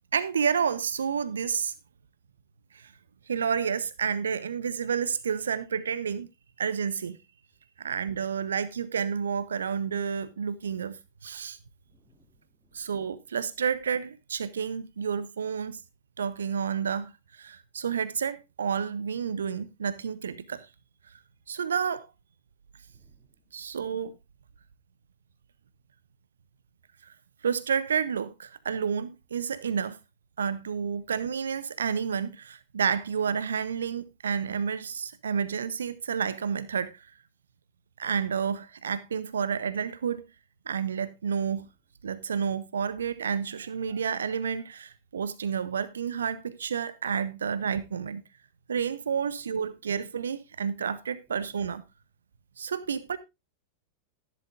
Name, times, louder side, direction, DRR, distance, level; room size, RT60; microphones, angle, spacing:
voice 1, 0.1-1.7 2.7-2.9 3.3-6.3 6.6-7.2 7.8-11.6 12.7-15.8 16.2-20.7 21.1-21.2 21.5-22.1 23.5-24.2 27.0-27.1 27.4-30.0 30.4-37.1 38.0-40.2 40.7-41.7 42.0-48.2 48.7-51.8 52.6-53.2, right 7 dB, 70° right, 0.7 m, -30 dB
voice 2, 11.9-12.9 22.9-23.4 31.0-31.1 52.8-53.1, left 2 dB, 5° left, 3.4 m, -67 dB
14.0 x 11.0 x 2.5 m
figure-of-eight pair, 90°, 0 cm